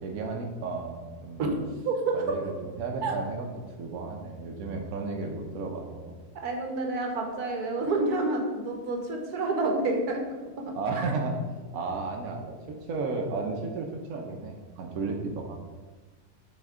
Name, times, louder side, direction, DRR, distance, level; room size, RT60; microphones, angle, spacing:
voice 1, 0.0-1.4 2.1-3.5 3.8-6.1 7.8-7.9 10.8-11.4 11.7-15.6, right 3 dB, 70° right, 1 dB, 1.2 m, -33 dB
voice 2, 6.4-10.2 10.6-11.1, right 3 dB, 85° right, 2 dB, 1.5 m, -29 dB
7.6 x 4.4 x 3.7 m, 1.3 s
omnidirectional pair, 1.6 m